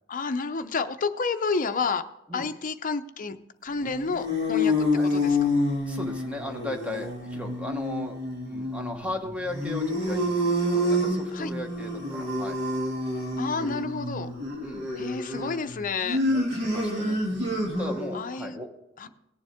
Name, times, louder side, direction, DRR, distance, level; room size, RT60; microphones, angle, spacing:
voice 1, 0.1-2.1 2.3-3.4 3.6-5.4 11.3-11.5 13.4-14.3 15.0-16.2 18.1-18.6 19.0-19.1, left 4 dB, 40° left, 9 dB, 0.6 m, -30 dB
sound 1, 3.7-18.2, left 1 dB, 55° right, 2.4 m, -28 dB
voice 2, 5.9-12.6 14.6-14.9 16.3-17.2 17.8-18.7, left 1 dB, 5° right, 3 dB, 1.1 m, -37 dB
18.5 x 7.1 x 3.6 m, 0.88 s
head